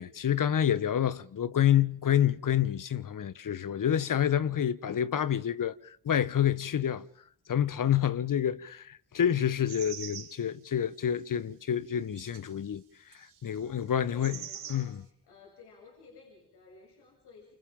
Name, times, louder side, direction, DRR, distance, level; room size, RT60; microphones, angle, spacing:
voice 1, 0.0-7.1 7.5-12.8 13.1-14.4 14.7-15.0, left 9 dB, 55° left, 1.3 m, -28 dB
sound 1, 9.7-10.4 11.0-11.1 12.2-12.5 13.1-13.5 14.2-14.9, right 9 dB, 70° right, 5.7 m, -43 dB
voice 2, 13.6-17.6, left 4 dB, 80° left, 7.7 m, -54 dB
29.0 x 28.5 x 3.8 m
supercardioid pair, 50°, 39 cm